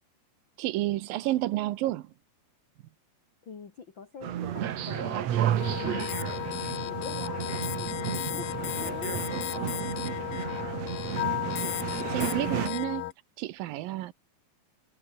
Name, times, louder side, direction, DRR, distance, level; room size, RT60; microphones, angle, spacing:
voice 1, 0.6-2.0 12.0-13.0 13.4-14.1, right 15 dB, 80° right, 2.7 m, -30 dB
voice 2, 3.4-5.3 5.8-6.3 6.7-9.3 12.2-12.9, left 5 dB, 35° left, 2.9 m, -44 dB
sound 1, 4.2-12.7, right 10 dB, 60° right, 2.3 m, -32 dB
sound 2, 5.6-13.1, left 17 dB, 80° left, 2.5 m, -34 dB
omnidirectional pair, 4.1 m